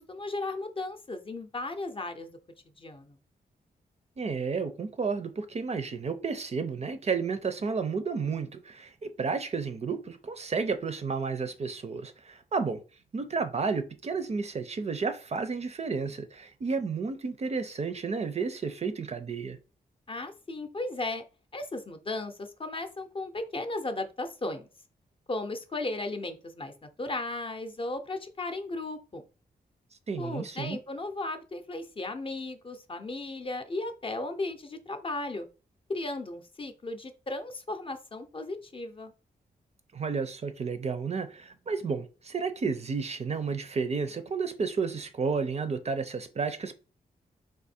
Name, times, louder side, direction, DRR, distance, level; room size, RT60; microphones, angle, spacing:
voice 1, 0.1-2.3 2.8-3.2 20.1-21.2 21.5-24.7 25.3-26.7 27.0-29.2 30.2-35.5 35.9-39.1, left 2 dB, 35° left, 0.6 m, -35 dB
voice 2, 4.2-12.8 13.1-19.6 30.1-30.8 39.9-46.7, right 5 dB, 40° right, 0.5 m, -32 dB
3.6 x 2.6 x 4.2 m
wide cardioid pair, 110°, 17 cm